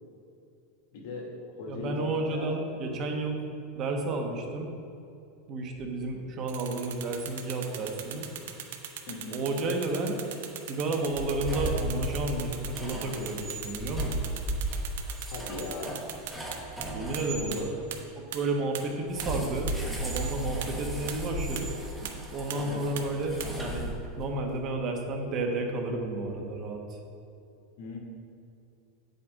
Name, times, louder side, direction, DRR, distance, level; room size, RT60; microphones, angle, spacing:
voice 1, 0.9-1.3 1.6-2.0 2.3-2.5 9.1-9.4 15.3-16.0 17.4-17.8 22.5-22.9 27.8-28.0, left 3 dB, 65° left, -1 dB, 2.2 m, -38 dB
voice 2, 1.7-3.4 3.7-4.7 5.5-8.3 9.3-10.2 10.7-14.2 16.9-17.6 18.1-19.7 20.0-21.7 22.3-27.0, right 2 dB, 35° right, 2 dB, 1.2 m, -31 dB
sound 1, 6.5-16.9 17.1-17.2 17.5-17.6 17.9-18.0 18.3-18.4 18.7-18.8 19.2-19.3 19.7-19.8 20.2-20.3 20.6-20.7 21.1-21.2 21.6-21.7 22.0-22.1 22.5-22.6 23.0-23.1 23.4-23.5, right 10 dB, 80° right, 1.0 m, -38 dB
sound 2, 11.4-17.5 19.1-24.3, right 1 dB, 5° right, 1.4 m, -35 dB
9.9 x 8.0 x 3.7 m, 2.6 s
supercardioid pair, 150°, 0 cm